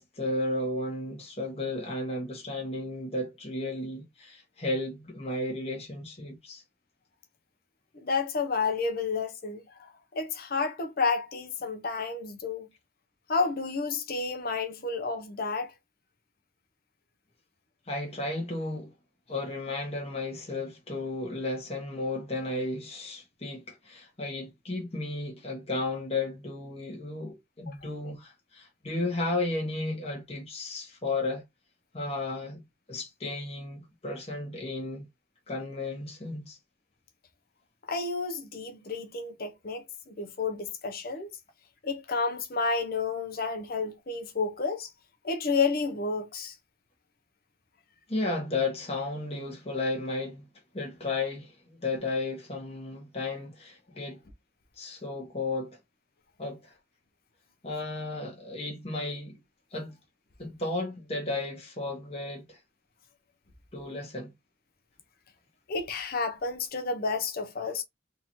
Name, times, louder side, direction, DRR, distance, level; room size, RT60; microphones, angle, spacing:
voice 1, 0.0-6.6 17.9-18.9 19.3-31.4 31.9-35.0 35.5-36.6 48.1-50.4 50.7-54.2 54.8-55.8 56.4-56.7 57.6-59.4 59.7-60.0 60.4-62.6 63.7-64.3, left 2 dB, 35° left, 1.3 m, -34 dB
voice 2, 8.0-12.7 13.3-15.7 27.7-27.8 37.9-41.3 41.8-44.9 45.2-46.5 65.7-67.8, left 4 dB, 55° left, 0.8 m, -31 dB
3.7 x 2.7 x 3.0 m
head